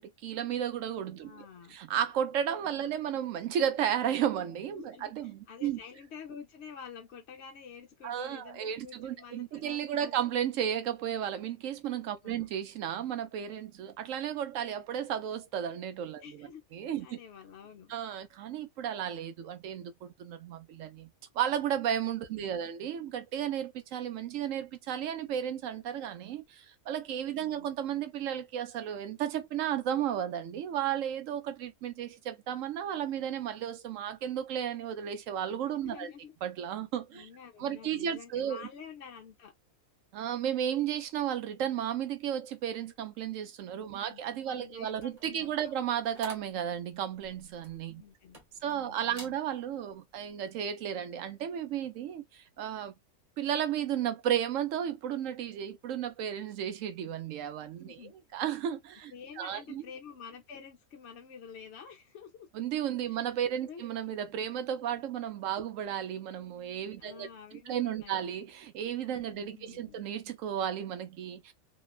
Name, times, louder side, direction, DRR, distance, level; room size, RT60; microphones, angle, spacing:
voice 1, 0.0-5.8 8.0-17.2 17.9-21.1 21.3-36.1 36.4-37.3 37.6-38.7 40.1-48.0 48.6-52.9 53.4-58.0 58.3-59.8 62.5-71.5, right 9 dB, 70° right, 0.9 m, -34 dB
voice 2, 1.2-1.8 2.7-3.0 4.8-10.3 12.2-12.5 16.2-16.6 17.0-17.9 22.3-22.7 27.4-27.7 35.8-36.3 37.1-39.5 43.8-44.2 44.4-45.7 48.0-48.4 48.6-49.4 57.8-58.1 59.1-62.5 63.1-63.3 63.6-63.8 67.0-68.2 69.2-70.0, left 6 dB, 60° left, 0.8 m, -49 dB
sound 1, 44.9-48.8 49.1-49.4 49.9-50.1, right 1 dB, 30° right, 0.9 m, -50 dB
2.9 x 2.1 x 2.3 m
omnidirectional pair, 1.5 m